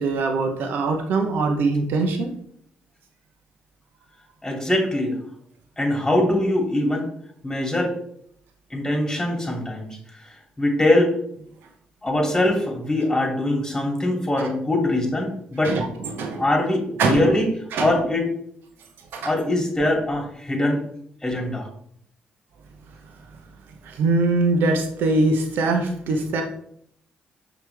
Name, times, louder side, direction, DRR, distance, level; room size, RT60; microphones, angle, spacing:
voice 1, 0.0-2.3 14.4-14.5 15.6-16.4 17.0-17.3 17.7-18.0 19.1-19.3 23.8-26.4, right 3 dB, 75° right, 4 dB, 0.9 m, -22 dB
voice 2, 4.4-5.2 5.8-7.1 7.4-8.0 8.7-9.9 10.1-11.2 12.0-15.8 16.4-17.5 17.8-18.3 19.2-20.8 21.2-21.7, left 1 dB, 15° left, 1 dB, 2.7 m, -22 dB
5.9 x 5.2 x 3.4 m, 0.67 s
supercardioid pair, 55°, 4 cm